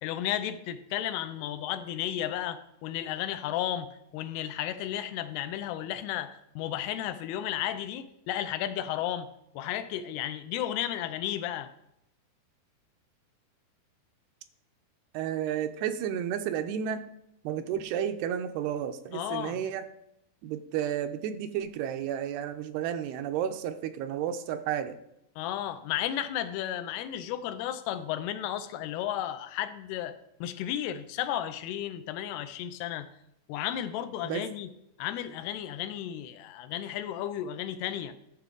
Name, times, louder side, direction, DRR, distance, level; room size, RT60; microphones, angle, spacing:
voice 1, 0.0-9.3 9.6-11.7 19.1-19.6 25.4-33.1 33.5-34.7 35.0-38.2, left 11 dB, 85° left, 11 dB, 2.6 m, -33 dB
voice 2, 15.1-17.1 17.4-19.8 20.4-25.0 34.2-34.5, right 9 dB, 90° right, 8 dB, 2.6 m, -32 dB
12.0 x 6.9 x 3.7 m, 0.82 s
omnidirectional pair, 4.6 m